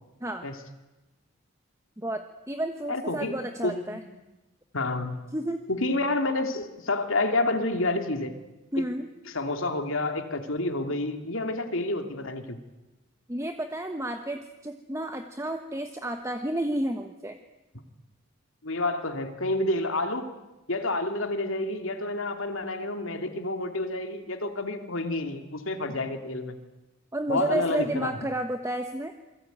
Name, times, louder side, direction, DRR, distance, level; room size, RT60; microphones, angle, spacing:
voice 1, 2.0-4.0 5.3-5.6 8.7-9.1 13.3-17.4 27.1-29.1, right 1 dB, 15° right, 6 dB, 1.2 m, -31 dB
voice 2, 2.9-3.3 3.6-3.8 4.7-5.2 5.7-8.3 8.8-8.9 9.3-12.6 18.6-20.3 20.7-26.6 27.3-28.1, left 2 dB, 70° left, 6 dB, 2.8 m, -29 dB
28.0 x 22.0 x 9.3 m, 1.0 s
head